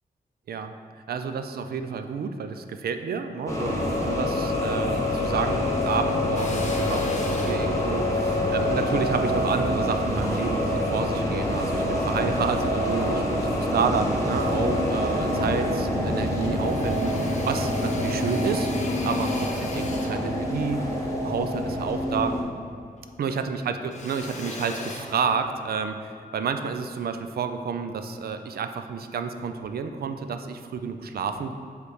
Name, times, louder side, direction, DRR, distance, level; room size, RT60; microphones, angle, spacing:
voice 1, 1.1-18.7 19.0-22.4 23.2-31.5, right 6 dB, 80° right, 8 dB, 0.4 m, -30 dB
sound 1, 3.5-22.4, left 1 dB, 20° left, 1.0 m, -26 dB
Drill, 6.3-10.9 11.4-12.6 13.1-14.0 14.4-14.5 14.7-15.7 16.0-22.7 23.0-25.8, left 2 dB, 45° left, 0.7 m, -40 dB
7.6 x 3.3 x 4.8 m, 2.2 s
wide cardioid pair, 135°, 16 cm